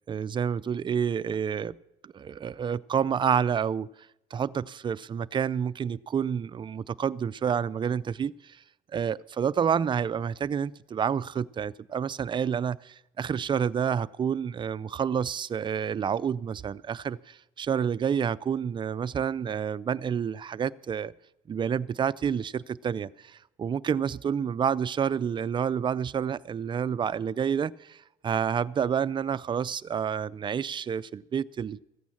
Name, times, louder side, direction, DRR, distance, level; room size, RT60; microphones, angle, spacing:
voice 1, 0.1-1.8 2.0-3.9 4.3-8.6 8.9-21.1 21.5-31.8, right 7 dB, 30° right, 0.4 m, -29 dB
14.5 x 8.8 x 7.2 m
cardioid pair, 110°, 17 cm